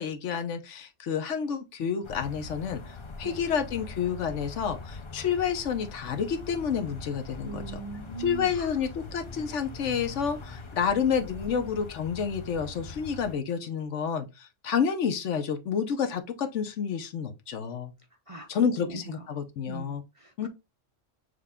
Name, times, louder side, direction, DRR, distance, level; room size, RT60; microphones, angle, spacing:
voice 1, 0.0-2.8 3.2-7.6 8.2-17.9 18.5-19.0 19.3-20.0 20.4-20.5, left 7 dB, 70° left, 1.1 m, -29 dB
sound 1, 2.0-13.4, left 3 dB, 35° left, 0.5 m, -42 dB
voice 2, 7.4-8.8 18.3-19.4 19.7-20.5, right 4 dB, 35° right, 0.6 m, -41 dB
6.6 x 2.2 x 3.5 m
omnidirectional pair, 1.3 m